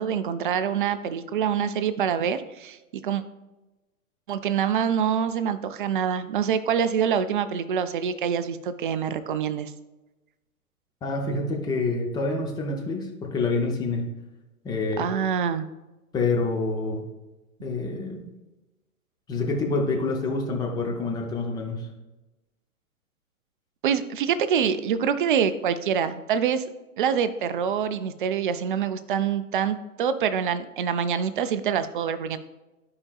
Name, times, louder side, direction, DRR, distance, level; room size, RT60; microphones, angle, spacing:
voice 1, 0.0-2.8 3.0-3.2 4.3-9.7 15.0-15.7 23.8-26.6 27.0-32.4, right 8 dB, 40° right, 11 dB, 0.4 m, -25 dB
voice 2, 11.0-14.1 14.6-15.1 16.1-17.0 17.6-18.3 19.3-21.9, left 3 dB, 10° left, 1 dB, 0.5 m, -27 dB
12.0 x 4.8 x 2.3 m, 1.1 s
figure-of-eight pair, 115°, 43 cm